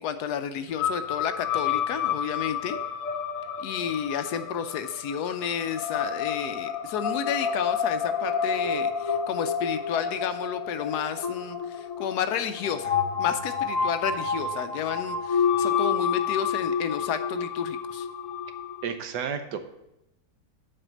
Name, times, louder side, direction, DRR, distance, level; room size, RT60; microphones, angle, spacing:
voice 1, 0.0-2.8 3.6-18.1, left 8 dB, 75° left, 10 dB, 1.1 m, -31 dB
sound 1, 0.8-18.9, left 6 dB, 60° left, 1.2 m, -29 dB
voice 2, 18.8-19.6, right 7 dB, 80° right, 7 dB, 1.4 m, -31 dB
7.8 x 4.9 x 6.3 m, 0.86 s
omnidirectional pair, 1.8 m